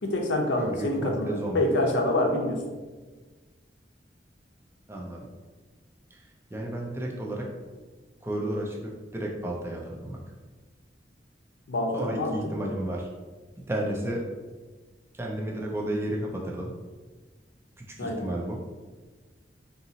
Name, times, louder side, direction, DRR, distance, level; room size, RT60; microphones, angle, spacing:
voice 1, 0.0-2.6 11.7-12.7 18.0-18.3, left 1 dB, 90° left, 2 dB, 0.6 m, -27 dB
voice 2, 0.6-1.7 4.9-5.3 6.1-6.2 6.5-7.5 8.2-10.2 11.9-13.1 13.7-14.2 15.1-16.7 17.8-18.6, right 1 dB, 15° right, -1 dB, 0.4 m, -32 dB
3.9 x 2.7 x 2.7 m, 1.3 s
head